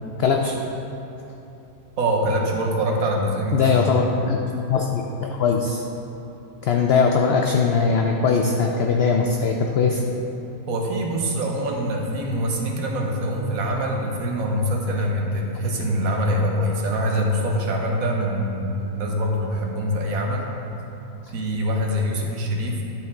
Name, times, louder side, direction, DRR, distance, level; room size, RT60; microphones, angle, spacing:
voice 1, 0.2-0.5 3.5-5.8 6.6-10.0, left 5 dB, 65° left, 1 dB, 0.6 m, -20 dB
voice 2, 2.0-3.8 10.7-20.5 21.3-22.8, equal, 80° right, 0 dB, 1.4 m, -24 dB
11.5 x 4.4 x 3.6 m, 2.9 s
omnidirectional pair, 1.4 m